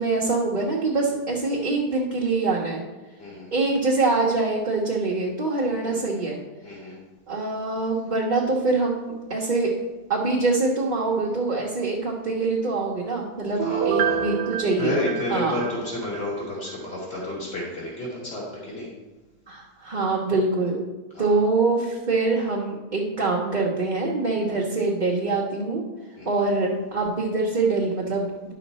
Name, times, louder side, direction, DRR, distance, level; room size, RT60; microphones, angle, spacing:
voice 1, 0.0-2.8 3.5-6.4 7.3-9.7 10.1-15.0 15.3-15.6 19.5-20.8 21.2-25.8 26.3-28.5, right 3 dB, 30° right, -3 dB, 1.1 m, -24 dB
voice 2, 3.2-3.5 5.8-6.2 6.6-7.0 13.6-14.2 14.8-18.9 21.1-21.3 24.4-24.5 26.2-26.3, left 1 dB, 35° left, -5 dB, 3.1 m, -31 dB
Piano, 13.6-16.3 16.7-16.8, right 7 dB, 70° right, 1.2 m, -27 dB
10.5 x 6.5 x 4.2 m, 1.2 s
omnidirectional pair, 1.8 m